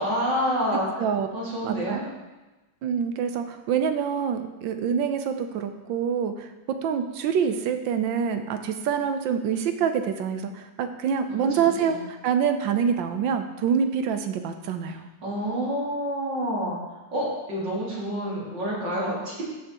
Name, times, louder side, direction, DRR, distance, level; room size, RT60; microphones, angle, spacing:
voice 1, 0.0-1.1 1.3-2.1 11.5-12.0 15.2-19.4, equal, 70° right, -6 dB, 3.2 m, -28 dB
voice 2, 0.7-1.3 1.6-2.0 2.8-6.5 6.8-12.0 12.2-15.1, right 7 dB, 90° right, 7 dB, 1.5 m, -26 dB
15.5 x 5.7 x 3.0 m, 1.1 s
omnidirectional pair, 2.0 m